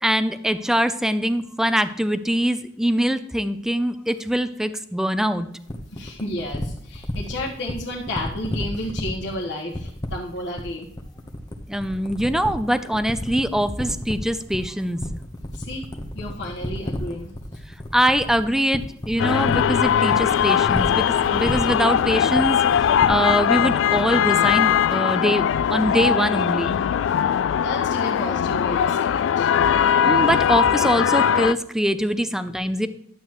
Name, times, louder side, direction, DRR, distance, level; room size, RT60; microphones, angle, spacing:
voice 1, 0.0-5.5 11.7-15.0 17.9-25.4 25.7-26.8 30.0-32.9, equal, 5° right, 11 dB, 0.5 m, -23 dB
sound 1, 5.7-23.4, left 1 dB, 20° left, 1.0 m, -31 dB
voice 2, 5.9-10.9 15.5-15.9 16.1-17.3 27.2-29.5, left 1 dB, 65° left, -5 dB, 1.4 m, -32 dB
sound 2, 19.2-31.5, left 8 dB, 85° left, 0.3 m, -20 dB
11.5 x 8.5 x 3.1 m, 0.75 s
head